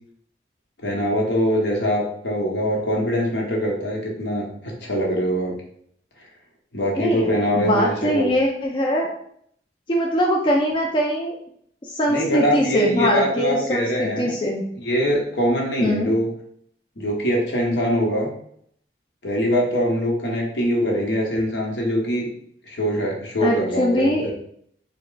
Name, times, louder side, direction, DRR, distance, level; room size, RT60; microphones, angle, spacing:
voice 1, 0.8-5.5 6.7-8.3 12.1-14.3 14.8-16.3 17.0-18.3 19.2-22.3 22.7-24.3, equal, 75° left, -1 dB, 1.1 m, -23 dB
voice 2, 7.0-9.1 9.9-11.4 11.9-14.6 15.8-16.1 23.4-24.3, equal, 25° left, -1 dB, 0.3 m, -22 dB
3.6 x 2.2 x 3.8 m, 0.66 s
head